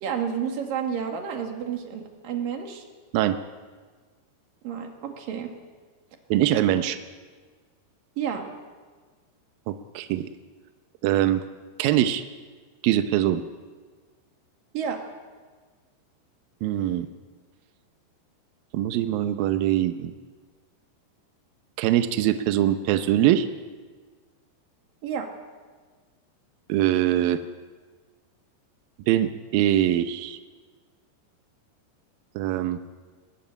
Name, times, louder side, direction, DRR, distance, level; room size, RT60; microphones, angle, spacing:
voice 1, 0.0-2.9 4.6-5.5 8.2-8.5 14.7-15.0 25.0-25.3, right 7 dB, 55° right, 3 dB, 3.5 m, -30 dB
voice 2, 6.3-7.0 9.7-10.3 11.0-11.4 11.8-12.2 12.8-13.4 16.6-17.1 18.7-20.1 21.8-23.5 26.7-27.4 29.1-30.4 32.4-32.8, right 12 dB, 85° right, 9 dB, 2.0 m, -23 dB
21.0 x 14.5 x 9.8 m, 1.5 s
omnidirectional pair, 5.1 m